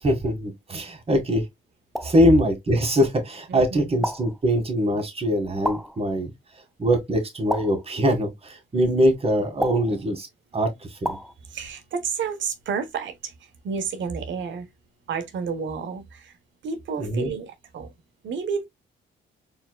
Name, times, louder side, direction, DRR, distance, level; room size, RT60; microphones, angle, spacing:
voice 1, 0.0-1.5 2.0-6.3 6.8-10.3 10.5-11.2 17.0-17.3, equal, 30° right, 1.9 m, -22 dB
sound 1, 1.9-2.3 4.0-4.4 5.6-6.0 7.5-7.9 9.6-10.0 11.0-11.3, equal, ahead, 0.5 m, -30 dB
voice 2, 3.5-4.1 11.5-14.7 15.1-16.3 16.6-17.9 18.2-18.7, right 6 dB, 70° right, 1.2 m, -31 dB
4.5 x 3.8 x 2.3 m
cardioid pair, 90°, 20 cm